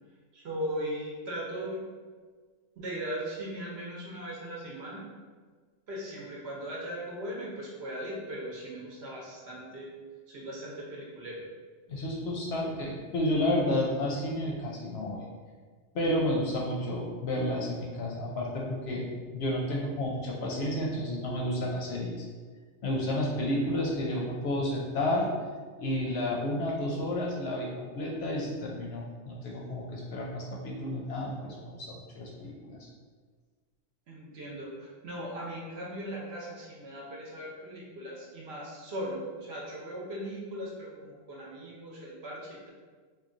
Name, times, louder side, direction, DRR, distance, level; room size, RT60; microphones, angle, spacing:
voice 1, 0.3-1.8 2.8-5.0 5.9-9.9 10.3-11.4 12.5-12.7 34.1-42.7, equal, 60° right, -4 dB, 0.9 m, -38 dB
voice 2, 11.9-15.2 15.9-19.0 19.3-22.2 22.8-25.3 25.8-32.9, left 1 dB, 65° left, -2 dB, 0.7 m, -31 dB
3.0 x 2.2 x 3.7 m, 1.5 s
omnidirectional pair, 1.3 m